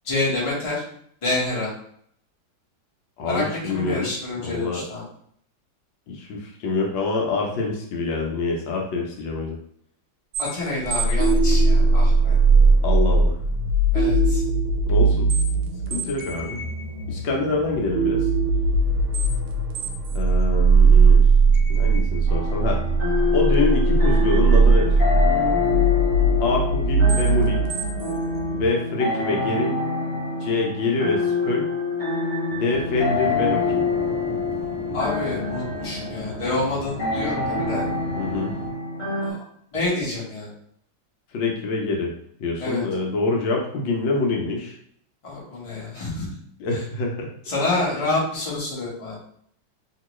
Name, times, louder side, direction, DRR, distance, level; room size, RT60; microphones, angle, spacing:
voice 1, 0.0-0.8 1.2-1.7 3.2-5.0 10.4-12.4 13.9-14.4 34.9-37.8 39.2-39.4 39.7-40.5 42.6-42.8 45.2-46.3 47.5-49.2, left 2 dB, 25° left, -6 dB, 0.7 m, -27 dB
voice 2, 3.2-4.1 4.4-4.8 6.1-9.6 12.8-13.4 14.9-15.3 15.9-16.6 17.1-18.3 20.1-21.2 21.7-22.8 23.3-25.0 26.4-27.6 28.5-29.8 30.4-31.7 32.5-33.8 38.2-38.6 41.3-42.1 42.4-44.8 46.6-47.3 48.0-48.1, left 3 dB, 75° left, 0 dB, 1.3 m, -25 dB
sound 1, 10.3-28.7, right 3 dB, 90° right, 1.4 m, -19 dB
sound 2, 22.3-39.3, left 4 dB, 40° left, 1.2 m, -26 dB
sound 3, 32.7-38.7, right 1 dB, 60° right, 1.1 m, -37 dB
2.9 x 2.9 x 3.0 m, 0.65 s
omnidirectional pair, 2.2 m